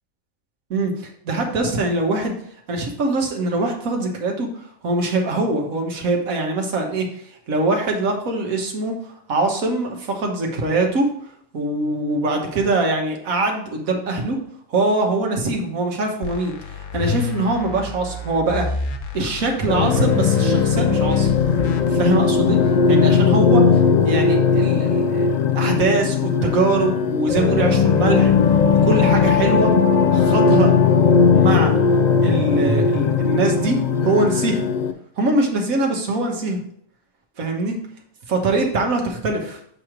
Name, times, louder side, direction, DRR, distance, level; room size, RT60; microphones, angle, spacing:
voice 1, 0.7-2.3 2.7-4.5 4.8-7.1 7.5-9.0 9.3-11.1 11.5-14.4 14.7-16.5 16.9-18.7 19.1-21.3 21.9-22.6 22.9-23.7 24.0-28.3 28.7-29.7 30.1-30.7 31.3-31.7 32.2-34.7 35.2-36.6 37.4-37.8 38.3-39.6, right 2 dB, 85° right, 1 dB, 1.6 m, -22 dB
sound 1, 16.2-21.8, left 5 dB, 45° left, 0.8 m, -29 dB
sound 2, 19.7-34.9, left 5 dB, 65° left, 0.4 m, -17 dB
sound 3, 22.9-24.5 26.7-30.5 30.8-33.8, right 4 dB, 65° right, 2.0 m, -35 dB
7.7 x 3.1 x 5.0 m, 0.67 s
omnidirectional pair, 1.4 m